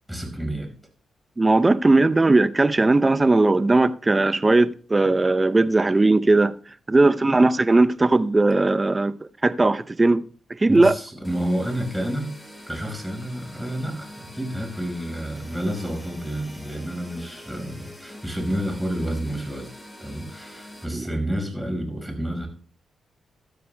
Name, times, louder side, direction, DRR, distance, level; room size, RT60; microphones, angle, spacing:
voice 1, 0.1-0.7 10.7-12.3 12.7-19.7 20.0-22.5, equal, 5° right, 5.0 m, -29 dB
voice 2, 1.4-6.5 6.9-9.1 9.4-10.2 10.5-10.9 20.9-21.0, right 2 dB, 25° right, 0.6 m, -18 dB
sound 1, 11.2-20.9, equal, 10° left, 4.1 m, -44 dB
15.5 x 13.0 x 2.2 m
supercardioid pair, 55°, 0 cm